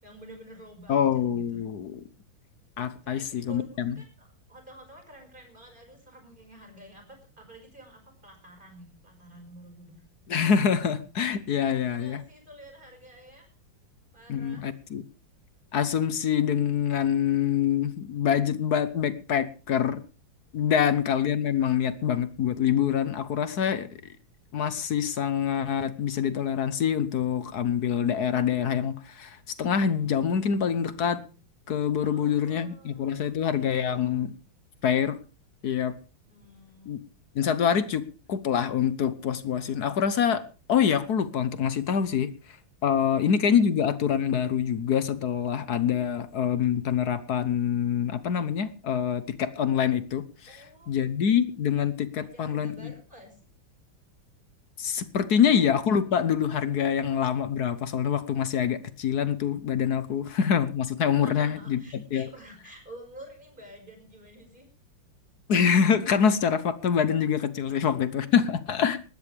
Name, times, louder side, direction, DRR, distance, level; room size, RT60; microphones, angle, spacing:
voice 1, 0.0-1.6 3.0-10.0 11.7-13.5 14.1-14.8 20.6-21.0 32.0-34.1 36.3-37.0 50.5-51.0 52.2-53.4 55.2-55.4 60.4-60.5 61.2-64.7 67.7-67.8, right 1 dB, 25° right, 4 dB, 5.5 m, -50 dB
voice 2, 0.9-2.0 2.8-3.9 10.3-12.2 14.3-15.0 15.7-20.0 20.5-24.1 24.5-31.2 31.7-34.3 34.8-35.2 35.6-35.9 36.9-37.0 37.4-40.4 40.7-42.6 42.8-50.6 50.9-52.9 54.8-61.8 62.1-62.3 65.5-69.0, left 8 dB, 60° left, 14 dB, 1.3 m, -25 dB
19.0 x 13.5 x 3.4 m, 0.35 s
omnidirectional pair, 2.2 m